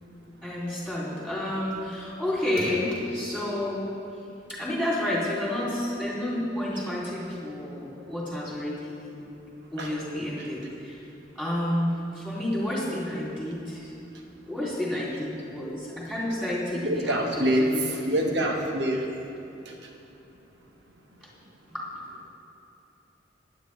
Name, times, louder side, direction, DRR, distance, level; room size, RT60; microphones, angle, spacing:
voice 1, 0.4-3.9 4.5-9.2 9.7-11.0 11.3-13.9 14.5-18.3 21.2-21.3 21.7-21.8, left 1 dB, 5° right, -7 dB, 3.0 m, -30 dB
voice 2, 16.8-17.7 18.0-19.0, right 1 dB, 75° right, 1 dB, 1.2 m, -25 dB
16.5 x 10.0 x 3.3 m, 2.9 s
head